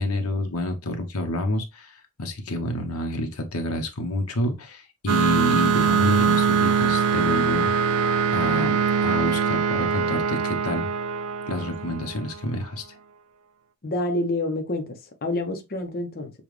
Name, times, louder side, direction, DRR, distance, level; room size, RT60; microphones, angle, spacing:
voice 1, 0.0-8.0 8.3-10.9 11.5-12.8, left 1 dB, 85° left, 1.0 m, -28 dB
sound 1, 5.1-12.4, right 6 dB, 80° right, 0.4 m, -23 dB
voice 2, 13.8-16.3, left 1 dB, 45° left, 0.8 m, -28 dB
6.9 x 2.4 x 3.2 m
head